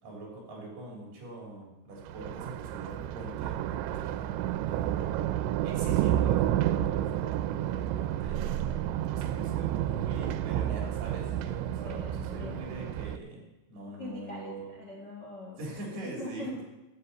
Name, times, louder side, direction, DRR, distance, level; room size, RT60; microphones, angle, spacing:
voice 1, 0.0-5.1 5.6-8.5 9.1-14.7 15.6-16.5, right 2 dB, 50° right, -2 dB, 4.9 m, -43 dB
Thunder, 2.0-13.2, right 12 dB, 90° right, 3.0 m, -30 dB
voice 2, 11.8-12.7 14.0-15.6 16.0-16.6, left 1 dB, 50° left, -3 dB, 1.3 m, -42 dB
14.0 x 6.5 x 8.1 m, 1.0 s
omnidirectional pair, 5.1 m